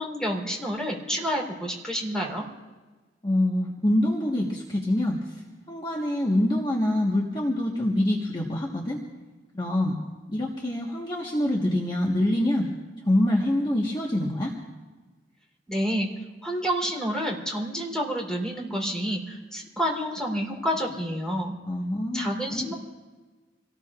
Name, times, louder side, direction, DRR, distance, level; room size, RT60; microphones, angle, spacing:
voice 1, 0.0-2.5 15.7-16.1 16.4-21.6 22.1-22.7, equal, 5° left, -2 dB, 3.7 m, -29 dB
voice 2, 3.2-5.2 5.7-9.0 9.5-10.0 10.3-12.7 13.1-14.5 21.7-22.7, left 1 dB, 25° left, -2 dB, 1.4 m, -25 dB
27.0 x 18.5 x 2.5 m, 1.3 s
head